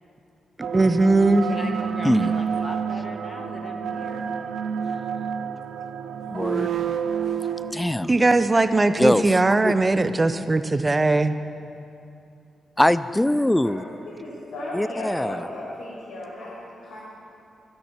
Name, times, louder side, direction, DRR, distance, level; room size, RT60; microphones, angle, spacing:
sound 1, 0.6-7.7, right 7 dB, 75° right, 0.6 m, -29 dB
voice 1, 0.7-1.5 8.1-11.4, right 2 dB, 30° right, 11 dB, 0.7 m, -19 dB
voice 2, 1.4-4.3, left 3 dB, 45° left, 3 dB, 1.7 m, -39 dB
voice 3, 6.3-6.7 7.7-8.1 9.0-9.4 9.6-9.7 12.8-13.8 14.7-15.5, left 1 dB, 10° left, 15 dB, 0.4 m, -22 dB
voice 4, 13.6-17.0, left 1 dB, 90° left, -11 dB, 3.8 m, -36 dB
12.5 x 10.5 x 7.3 m, 2.7 s
cardioid pair, 60°, 0 cm